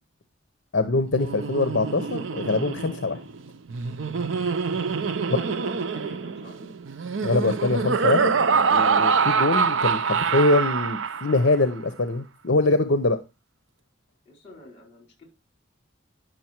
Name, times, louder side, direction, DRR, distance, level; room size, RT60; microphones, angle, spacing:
voice 1, 0.7-3.2 5.3-5.4 7.2-8.4 8.7-13.2, left 2 dB, 60° left, 10 dB, 0.8 m, -23 dB
Laughter, 1.1-11.6, right 5 dB, 75° right, 0.6 m, -25 dB
voice 2, 5.1-6.8 14.2-15.3, left 1 dB, 30° left, 3 dB, 4.4 m, -46 dB
10.0 x 6.5 x 4.4 m, 0.26 s
head